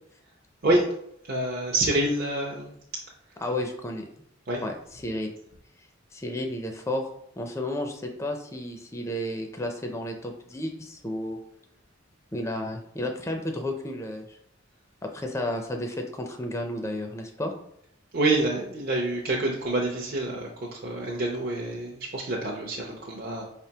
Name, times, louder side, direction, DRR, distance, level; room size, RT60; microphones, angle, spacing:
voice 1, 1.2-2.7 4.5-4.6 18.1-23.4, right 2 dB, 50° right, -3 dB, 0.6 m, -27 dB
voice 2, 3.4-4.0 4.6-5.3 6.1-7.0 7.4-11.4 12.3-14.4 15.0-17.5, left 1 dB, 15° left, 3 dB, 0.4 m, -32 dB
5.3 x 3.4 x 2.8 m, 0.74 s
head